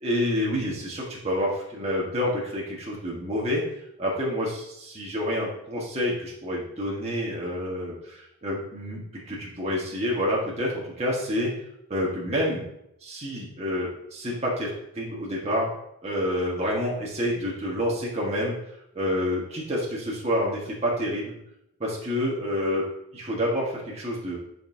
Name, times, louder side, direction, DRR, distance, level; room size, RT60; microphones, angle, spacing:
voice 1, 0.0-3.6 4.0-8.0 8.4-11.5 11.9-12.6 13.0-15.7 16.0-18.5 18.9-21.3 21.8-22.9 23.1-24.4, equal, 30° right, -5 dB, 1.4 m, -28 dB
10.0 x 5.4 x 2.7 m, 0.79 s
head